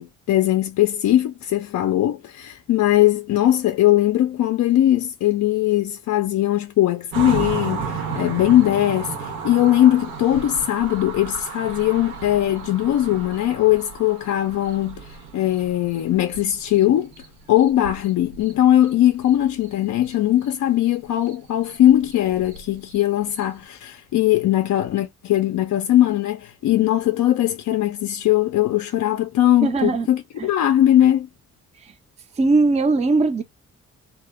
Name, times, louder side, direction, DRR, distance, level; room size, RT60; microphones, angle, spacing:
voice 1, 0.0-17.1 17.5-31.3, left 13 dB, 50° left, 0.5 m, -20 dB
sound 1, 7.1-17.3 17.6-18.5 18.8-18.9 19.3-20.2 20.4-20.5 20.8-23.6, right 5 dB, 85° right, 0.9 m, -33 dB
voice 2, 29.6-30.1 30.4-30.5 31.8-31.9 32.4-33.4, right 3 dB, 20° right, 0.5 m, -19 dB
2.1 x 2.0 x 3.1 m
hypercardioid pair, 45°, 37 cm